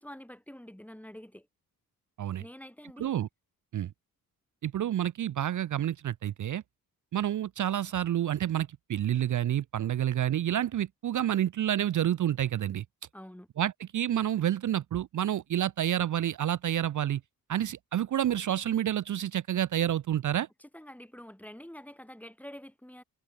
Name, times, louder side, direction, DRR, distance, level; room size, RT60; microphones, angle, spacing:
voice 1, 0.0-1.5 2.4-3.2 13.1-13.5 20.6-23.0, equal, 5° left, 3.2 m, -47 dB
voice 2, 4.6-6.6 7.1-12.8 13.6-17.2 17.5-20.5, right 11 dB, 55° right, 0.6 m, -29 dB
cardioid pair, 70°, 37 cm